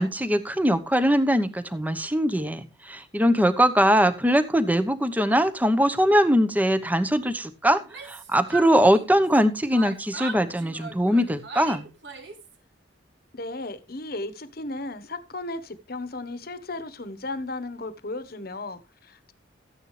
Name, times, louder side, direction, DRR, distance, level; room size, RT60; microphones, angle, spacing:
voice 1, 0.0-11.9, equal, 10° right, 1.0 m, -22 dB
Yell, 7.8-9.4 9.7-12.5, right 3 dB, 65° right, 2.2 m, -39 dB
voice 2, 13.3-19.3, left 2 dB, 55° left, 1.1 m, -35 dB
14.0 x 9.7 x 3.3 m
head